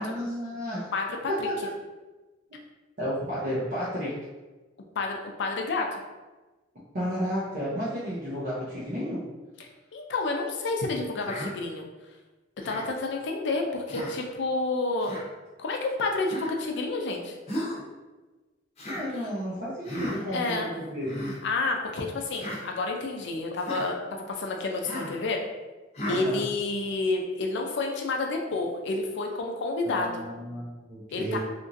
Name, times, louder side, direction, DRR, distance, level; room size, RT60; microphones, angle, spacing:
voice 1, 0.0-0.9 1.4-1.5 2.5-2.6 3.0-4.1 6.9-9.2 18.9-21.2 26.1-26.4 29.8-31.4, equal, 45° right, -9 dB, 0.7 m, -32 dB
voice 2, 0.9-1.5 5.0-6.0 9.6-11.9 12.6-15.1 15.6-17.4 19.2-19.3 20.2-20.7 21.4-24.0 24.3-25.5 26.1-30.2 31.1-31.4, left 3 dB, 65° left, 2 dB, 0.5 m, -29 dB
Human voice, 11.2-11.5 12.6-12.9 13.9-14.2 15.0-15.2 16.3-16.5 17.5-17.8 18.8-19.0 19.8-20.2 21.0-21.4 22.3-22.6 23.6-23.9 24.8-25.2 25.9-26.2, equal, 35° left, 0.7 m, -34 dB
2.9 x 2.5 x 2.5 m, 1.2 s
head